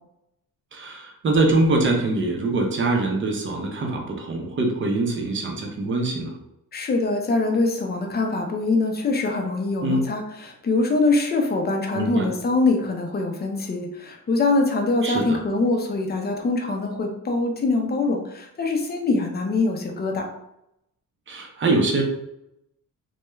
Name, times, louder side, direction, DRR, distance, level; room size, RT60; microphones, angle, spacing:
voice 1, 0.7-6.4 9.8-10.1 11.9-12.3 15.0-15.4 21.3-22.0, right 2 dB, 35° right, 1 dB, 0.6 m, -23 dB
voice 2, 6.7-20.3, left 3 dB, 30° left, 2 dB, 0.5 m, -23 dB
2.3 x 2.2 x 3.0 m, 0.83 s
cardioid pair, 110°, 35 cm